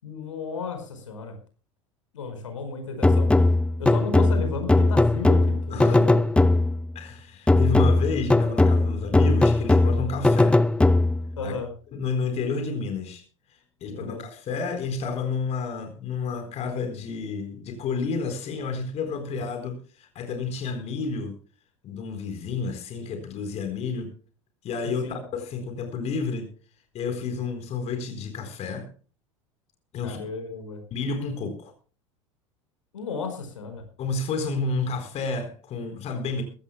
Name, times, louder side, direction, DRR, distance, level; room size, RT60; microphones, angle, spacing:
voice 1, 0.0-1.3 2.1-3.3 3.8-6.2 11.4-11.7 13.8-14.2 25.0-25.2 30.0-30.8 32.9-33.8, left 4 dB, 75° left, 7 dB, 4.9 m, -34 dB
sound 1, 3.0-6.9 7.5-11.4, left 2 dB, 5° left, 0.7 m, -19 dB
voice 2, 6.9-10.6 11.4-11.5 11.9-13.2 13.5-21.4 21.8-24.1 24.6-26.5 26.9-28.9 29.9-30.2 30.9-31.7 34.0-36.4, left 4 dB, 40° left, 7 dB, 4.1 m, -30 dB
22.0 x 16.5 x 2.2 m, 0.37 s
figure-of-eight pair, 80°, 17 cm